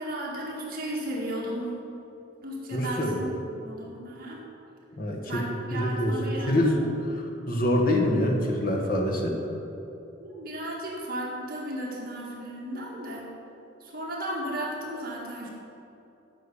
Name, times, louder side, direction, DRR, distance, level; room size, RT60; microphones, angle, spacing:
voice 1, 0.0-1.7 2.4-4.4 5.3-6.9 10.2-13.3 13.8-15.5, right 1 dB, 45° right, -3 dB, 2.0 m, -35 dB
voice 2, 2.7-3.2 5.0-5.4 5.7-6.2 6.5-6.8 7.5-9.4, left 1 dB, 45° left, 0 dB, 1.5 m, -25 dB
13.0 x 6.2 x 7.0 m, 3.0 s
head